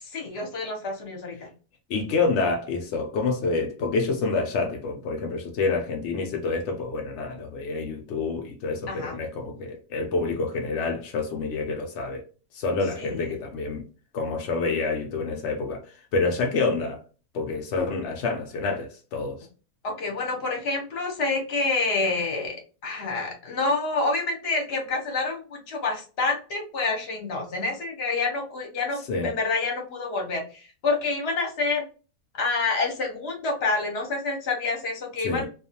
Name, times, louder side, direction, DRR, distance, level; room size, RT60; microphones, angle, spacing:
voice 1, 0.1-1.5 8.9-9.2 12.9-13.3 19.8-22.6 22.8-31.8 32.3-35.5, left 3 dB, 50° left, 0.8 m, -28 dB
voice 2, 1.9-12.2 12.5-13.9 14.1-15.8 16.1-17.0 17.3-19.5 29.1-29.3 35.2-35.5, left 3 dB, 80° left, 0.6 m, -27 dB
2.5 x 2.3 x 2.7 m
omnidirectional pair, 1.8 m